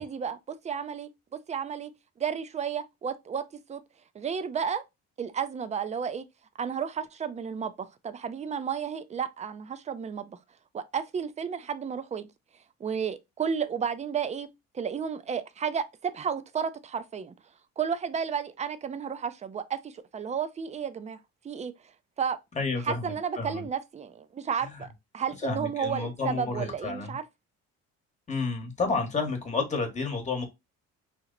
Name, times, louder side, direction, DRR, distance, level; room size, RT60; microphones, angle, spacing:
voice 1, 0.0-1.9 2.2-3.8 4.1-4.8 5.2-6.2 6.6-10.4 10.7-12.3 12.8-14.5 14.7-17.3 17.8-21.2 21.4-21.7 22.2-22.4 22.8-24.9 25.1-27.3, right 7 dB, 25° right, 0.4 m, -32 dB
voice 2, 22.5-23.6 25.4-27.1 28.3-30.4, left 4 dB, 25° left, 1.1 m, -30 dB
2.9 x 2.1 x 3.7 m
cardioid pair, 95°, 30 cm